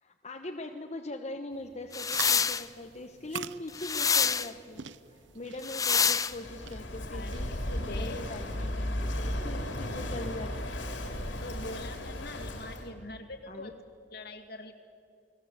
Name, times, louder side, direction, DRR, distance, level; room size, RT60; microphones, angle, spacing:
voice 1, 0.0-10.7 13.5-13.7, left 1 dB, 35° left, 3 dB, 1.2 m, -41 dB
sound 1, 1.9-2.6 3.7-4.5 5.6-6.3, left 6 dB, 20° left, 0.6 m, -26 dB
sound 2, 2.0-8.3, right 8 dB, 75° right, 0.8 m, -45 dB
Walk footsteps / Wind / Waves surf, 6.3-12.9, left 1 dB, 85° left, 3.6 m, -35 dB
voice 2, 7.0-8.2 11.4-13.8 14.1-14.7, left 2 dB, 60° left, 6 dB, 2.4 m, -43 dB
30.0 x 20.0 x 8.2 m, 2.5 s
head